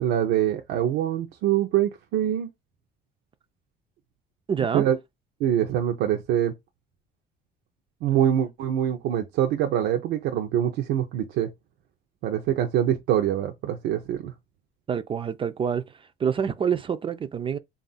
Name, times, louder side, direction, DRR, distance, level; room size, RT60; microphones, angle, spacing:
voice 1, 0.0-2.5 4.7-5.0 5.4-6.5 8.0-11.5 12.2-14.3, right 11 dB, 90° right, 0.6 m, -24 dB
voice 2, 4.5-4.9 14.9-15.9 16.2-17.6, right 7 dB, 30° right, 0.3 m, -26 dB
3.6 x 2.4 x 3.9 m
cardioid pair, 110°, 17 cm